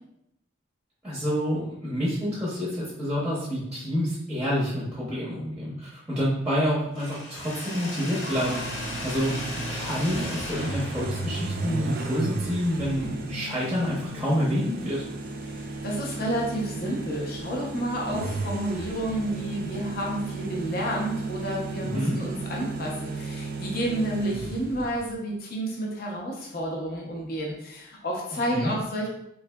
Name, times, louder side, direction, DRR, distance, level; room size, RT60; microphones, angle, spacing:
voice 1, 1.0-8.6 9.0-15.0 21.9-22.2 28.5-28.7, equal, 5° right, -7 dB, 0.7 m, -28 dB
Mechanisms, 6.9-12.8, left 2 dB, 80° left, 1.2 m, -37 dB
sound 1, 8.3-25.1, right 3 dB, 45° right, 0.3 m, -34 dB
voice 2, 15.5-29.1, right 1 dB, 45° left, -2 dB, 0.6 m, -30 dB
3.6 x 3.2 x 2.2 m, 0.78 s
head